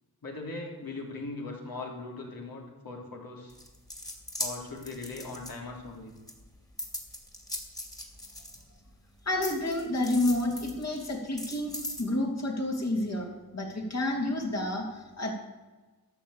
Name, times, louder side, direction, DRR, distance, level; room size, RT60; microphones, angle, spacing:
voice 1, 0.2-3.6 4.4-6.1, left 3 dB, 70° left, -1 dB, 3.3 m, -40 dB
sound 1, 3.5-5.9 6.3-8.9 9.4-12.0, left 1 dB, 10° left, 2.4 m, -39 dB
voice 2, 9.2-13.3 13.5-15.3, left 1 dB, 45° left, 0 dB, 2.9 m, -30 dB
13.0 x 7.0 x 7.2 m, 1.2 s
cardioid pair, 75°, 37 cm